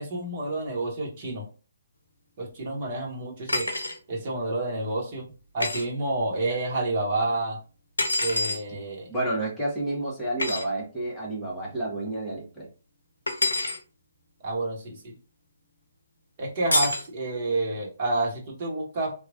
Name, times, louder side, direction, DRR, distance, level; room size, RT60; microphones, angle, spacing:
voice 1, 0.0-1.4 2.4-3.7 4.1-5.3 5.5-7.6 8.2-9.1 14.4-15.1 16.4-19.1, right 2 dB, 40° right, -1 dB, 1.1 m, -29 dB
sound 1, 3.5-4.0 5.6-5.8 8.0-8.6 10.4-10.6 13.3-13.8 16.7-17.1, left 2 dB, 75° left, 0.6 m, -26 dB
voice 2, 9.1-12.7, right 2 dB, 5° left, -8 dB, 1.3 m, -30 dB
3.0 x 2.3 x 2.5 m, 0.35 s
figure-of-eight pair, 130°, 0 cm